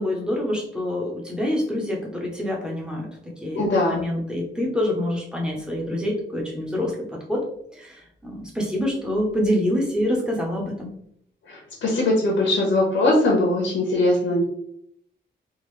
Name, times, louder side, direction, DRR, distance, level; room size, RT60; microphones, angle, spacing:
voice 1, 0.0-3.1 3.4-6.9 7.3-7.4 7.8-7.9 8.2-10.9, left 1 dB, 5° right, -2 dB, 0.8 m, -26 dB
voice 2, 3.5-4.0 11.5-14.4, left 2 dB, 85° left, -2 dB, 0.9 m, -21 dB
3.7 x 2.5 x 3.1 m, 0.70 s
wide cardioid pair, 150°, 20 cm